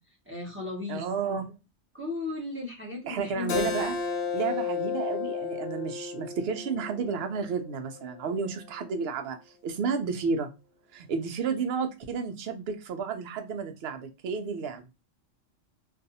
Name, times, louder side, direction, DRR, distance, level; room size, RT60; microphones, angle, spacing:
voice 1, 0.3-1.0 1.9-3.7, left 3 dB, 10° right, -3 dB, 0.7 m, -35 dB
voice 2, 0.9-1.6 3.1-4.0 4.3-9.4 9.6-10.5 10.9-14.8, right 5 dB, 60° right, 7 dB, 0.7 m, -31 dB
Keyboard (musical), 3.5-8.7, left 6 dB, 80° left, 1.0 m, -33 dB
2.5 x 2.3 x 2.6 m, 0.27 s
omnidirectional pair, 1.3 m